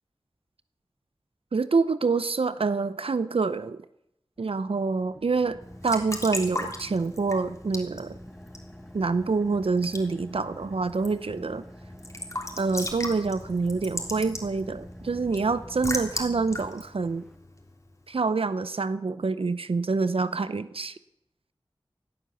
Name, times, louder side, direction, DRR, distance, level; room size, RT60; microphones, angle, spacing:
voice 1, 1.5-3.8 4.4-5.6 5.8-8.2 8.9-11.6 12.6-17.2 18.1-21.0, right 4 dB, 85° right, 13 dB, 0.6 m, -26 dB
Car / Idling, 4.5-17.4, equal, ahead, 1.0 m, -47 dB
Raindrop / Drip / Trickle dribble, 5.6-18.1, left 1 dB, 35° left, 3.4 m, -38 dB
18.0 x 11.5 x 6.9 m, 0.80 s
wide cardioid pair, 50°, 9 cm